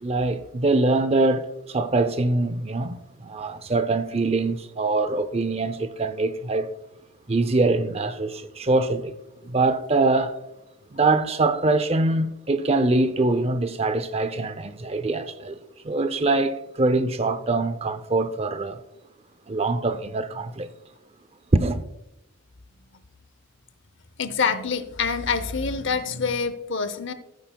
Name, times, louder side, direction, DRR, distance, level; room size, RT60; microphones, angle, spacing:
voice 1, 0.0-6.7 7.3-9.1 9.4-10.4 10.9-15.6 15.8-18.8 19.5-20.7 21.5-21.8, right 2 dB, 30° right, 0.5 m, -23 dB
voice 2, 24.2-27.1, left 5 dB, 60° left, 0.8 m, -26 dB
15.0 x 9.0 x 2.3 m
head